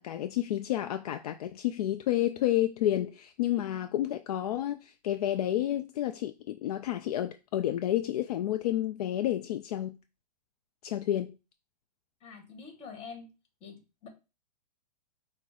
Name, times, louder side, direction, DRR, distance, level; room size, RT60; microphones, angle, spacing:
voice 1, 0.0-10.0 10.8-11.3, left 12 dB, 65° left, 0.4 m, -30 dB
voice 2, 12.2-13.3 13.6-14.1, left 5 dB, 30° left, 1.6 m, -46 dB
5.7 x 2.1 x 3.7 m
hypercardioid pair, 130°, 21 cm